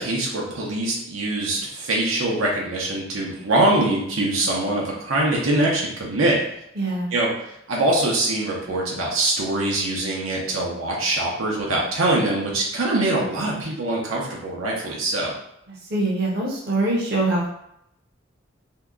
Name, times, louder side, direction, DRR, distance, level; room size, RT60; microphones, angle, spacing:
voice 1, 0.0-6.4 7.1-7.3 7.7-15.3, right 2 dB, 80° right, -3 dB, 0.8 m, -23 dB
voice 2, 6.8-7.1 15.9-17.5, right 2 dB, 50° right, -4 dB, 0.8 m, -23 dB
2.8 x 2.3 x 3.6 m, 0.77 s
head